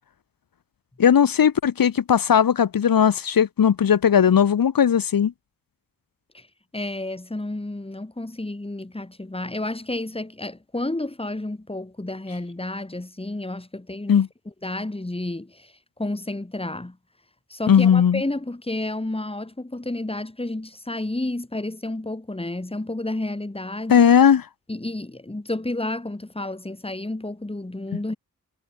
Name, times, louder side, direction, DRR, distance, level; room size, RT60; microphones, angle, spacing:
voice 1, 1.0-5.3 14.1-14.3 17.7-18.2 23.9-24.4, left 8 dB, 85° left, 0.9 m, -17 dB
voice 2, 6.7-14.2 14.6-17.0 17.5-24.1 24.7-28.2, left 2 dB, 15° left, 1.9 m, -31 dB
wide cardioid pair, 55°, 34 cm